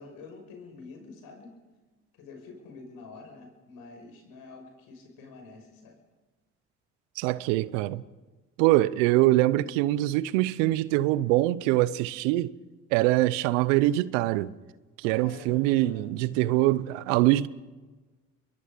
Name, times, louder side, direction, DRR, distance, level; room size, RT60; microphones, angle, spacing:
voice 1, 0.0-1.5 2.2-6.0 15.1-16.6, left 4 dB, 70° left, 6.0 m, -47 dB
voice 2, 7.2-8.0 8.6-12.5 12.9-14.5 15.0-17.5, right 17 dB, 85° right, 0.8 m, -24 dB
26.5 x 22.0 x 5.2 m
hypercardioid pair, 60°, 37 cm